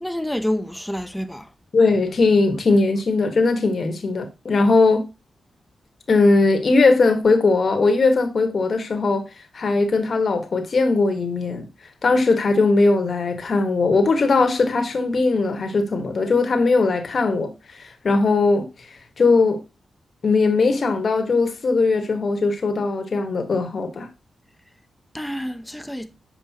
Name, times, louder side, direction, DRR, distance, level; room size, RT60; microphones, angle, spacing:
voice 1, 0.0-1.5 25.1-26.1, equal, 5° left, 0.7 m, -28 dB
voice 2, 1.7-5.0 6.1-9.2 9.5-11.6 12.0-17.5 17.8-18.7 19.2-19.6 20.2-24.1, left 3 dB, 55° left, 1.4 m, -19 dB
7.4 x 4.8 x 2.9 m
cardioid pair, 75°, 0 cm